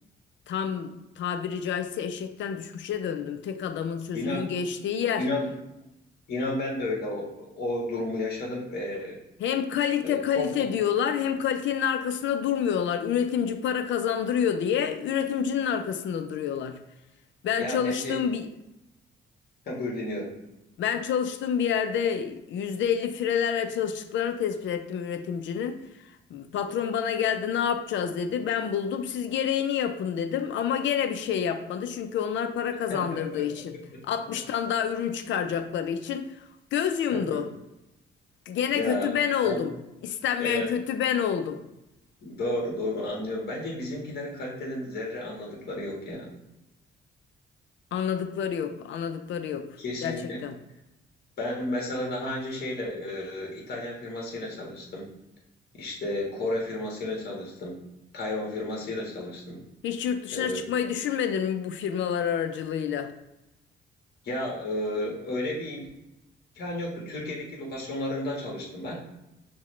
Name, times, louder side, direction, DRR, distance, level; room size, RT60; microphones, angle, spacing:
voice 1, 0.5-5.2 9.4-16.8 17.4-18.5 20.8-25.8 26.3-33.8 34.0-36.3 36.7-37.5 38.5-39.7 40.0-41.6 47.9-49.7 50.0-50.5 59.8-63.1, left 8 dB, 70° left, 8 dB, 0.5 m, -28 dB
voice 2, 4.1-4.5 5.2-5.5 6.3-9.2 10.0-10.5 17.6-18.2 19.6-20.3 32.9-33.4 33.7-33.8 37.1-37.4 38.7-39.1 39.4-39.7 40.4-40.7 42.2-46.3 49.8-50.4 51.4-55.1 55.7-57.8 58.1-59.6 60.3-60.7 64.2-65.9 66.5-69.0, left 1 dB, 55° left, -2 dB, 1.4 m, -32 dB
6.0 x 2.2 x 3.1 m, 0.91 s
cardioid pair, 90°, 20 cm